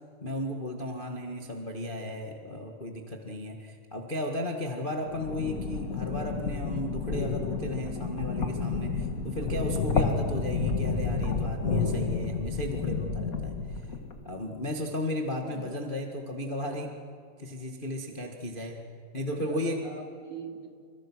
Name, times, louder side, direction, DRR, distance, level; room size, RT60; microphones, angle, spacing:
voice 1, 0.2-13.6 14.2-16.9 17.4-18.8 19.1-19.8, left 1 dB, 25° left, 1 dB, 1.2 m, -34 dB
sound 1, 5.1-14.3, left 4 dB, 45° left, 1.2 m, -30 dB
voice 2, 15.5-16.0 19.3-20.7, right 4 dB, 60° right, 2 dB, 4.1 m, -43 dB
28.5 x 26.0 x 6.3 m, 2.2 s
omnidirectional pair, 3.9 m